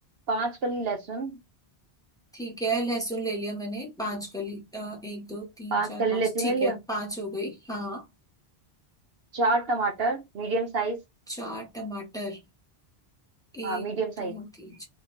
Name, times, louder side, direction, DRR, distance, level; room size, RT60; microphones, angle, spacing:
voice 1, 0.3-1.4 5.7-6.7 9.3-11.0 13.6-14.3, right 3 dB, 65° right, 1.1 m, -27 dB
voice 2, 2.3-8.1 11.3-12.4 13.5-13.9 14.2-14.9, right 1 dB, 5° left, 1.4 m, -33 dB
3.4 x 3.2 x 3.2 m
omnidirectional pair, 1.1 m